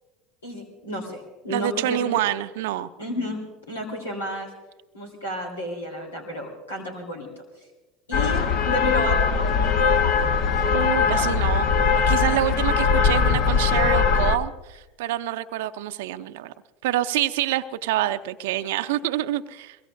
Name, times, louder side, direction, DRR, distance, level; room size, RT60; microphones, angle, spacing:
voice 1, 0.4-2.1 3.0-3.4 3.7-4.5 4.9-7.4 8.1-9.3 11.1-11.3, equal, 90° left, 1 dB, 3.3 m, -31 dB
voice 2, 1.5-2.9 10.7-11.7 12.1-16.5 16.8-19.8, right 13 dB, 70° right, 10 dB, 0.6 m, -26 dB
sound 1, 8.1-14.4, left 5 dB, 60° left, 1.1 m, -21 dB
22.5 x 22.5 x 2.6 m, 1.1 s
hypercardioid pair, 75°, 0 cm